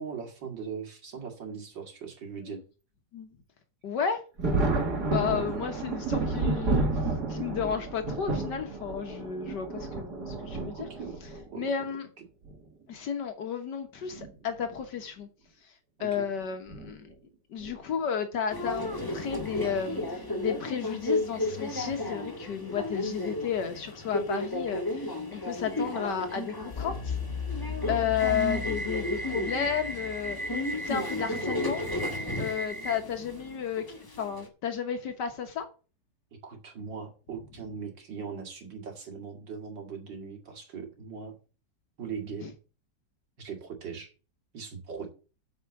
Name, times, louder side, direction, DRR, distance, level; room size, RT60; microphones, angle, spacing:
voice 1, 0.0-2.6 5.2-5.7 10.7-11.2 11.5-11.7 12.2-12.3 16.0-16.3 36.3-41.3 42.0-42.5 43.4-44.1 44.5-45.1, right 6 dB, 85° right, 2.9 m, -40 dB
voice 2, 3.8-4.2 5.0-6.9 7.3-10.9 11.6-12.1 12.9-15.3 15.6-15.7 16.0-17.1 17.5-27.2 27.9-30.4 30.8-31.8 32.4-33.8 34.2-35.7 42.4-42.5, left 7 dB, 70° left, 1.7 m, -32 dB
Thunder, 4.4-11.4 12.4-12.5 14.0-14.3 14.6-14.7 16.7-16.9 17.6-17.9, right 3 dB, 60° right, 2.7 m, -31 dB
Subway metro underground, 18.5-34.5, left 1 dB, 15° left, 1.4 m, -33 dB
sound 1, 26.7-31.6, left 5 dB, 45° left, 1.4 m, -37 dB
8.1 x 5.5 x 7.1 m
omnidirectional pair, 1.9 m